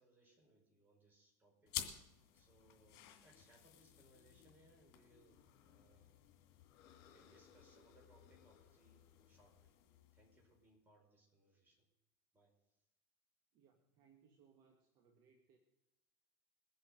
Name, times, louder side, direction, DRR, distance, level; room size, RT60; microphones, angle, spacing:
voice 1, 0.0-1.8 2.3-6.3 7.0-9.0 9.3-9.7 10.1-11.8 12.3-12.5, right 2 dB, 25° right, 0 dB, 5.0 m, -70 dB
sound 1, 1.7-10.6, left 11 dB, 65° left, 2.3 m, -53 dB
voice 2, 13.5-15.6, right 6 dB, 55° right, 3 dB, 1.6 m, -70 dB
22.0 x 8.0 x 5.1 m, 0.89 s
supercardioid pair, 135°, 8 cm